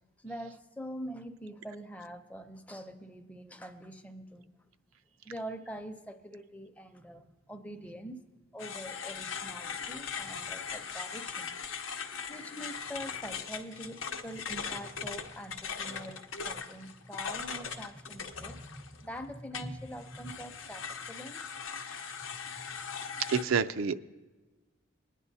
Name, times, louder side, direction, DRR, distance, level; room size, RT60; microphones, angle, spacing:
voice 1, 0.2-4.5 5.2-8.2 8.5-11.5 12.3-21.4 22.7-22.8, equal, 5° left, 6 dB, 0.6 m, -44 dB
sound 1, 8.6-19.1 19.5-23.4, left 6 dB, 80° left, 0.8 m, -40 dB
voice 2, 23.3-24.0, right 6 dB, 85° right, 10 dB, 0.4 m, -27 dB
20.5 x 9.9 x 2.7 m, 1.2 s
head